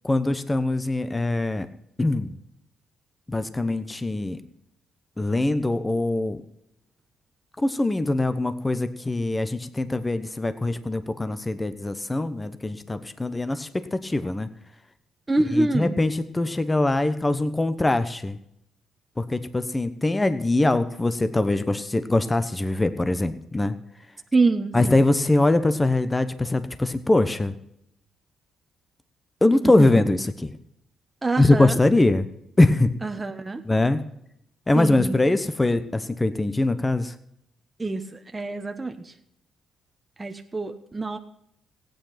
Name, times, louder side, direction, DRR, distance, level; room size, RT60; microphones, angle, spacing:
voice 1, 0.0-1.7 2.0-2.4 3.3-4.4 5.2-6.4 7.6-14.5 15.5-18.4 19.2-23.7 24.7-27.5 29.4-30.5 31.4-32.3 32.6-33.0 33.6-34.0 34.7-37.1, left 2 dB, 15° left, 11 dB, 1.0 m, -22 dB
voice 2, 15.3-15.9 24.3-25.0 29.6-29.9 31.2-31.8 33.0-33.6 34.7-35.1 37.8-39.1 40.2-41.2, right 3 dB, 20° right, 6 dB, 1.1 m, -25 dB
15.5 x 9.2 x 5.8 m, 0.76 s
cardioid pair, 90°, 0 cm